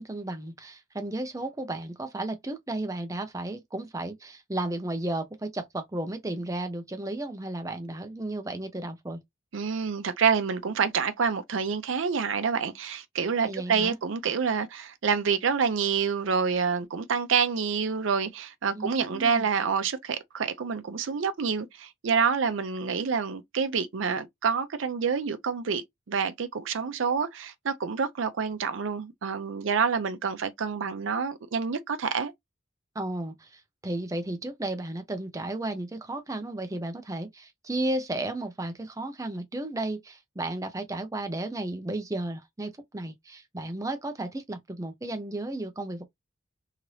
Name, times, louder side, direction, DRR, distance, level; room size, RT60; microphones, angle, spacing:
voice 1, 0.0-9.2 13.4-14.0 18.7-19.5 32.9-46.0, right 2 dB, 15° right, 0.5 m, -34 dB
voice 2, 9.5-32.3, right 6 dB, 75° right, 0.5 m, -27 dB
2.8 x 2.6 x 3.1 m
head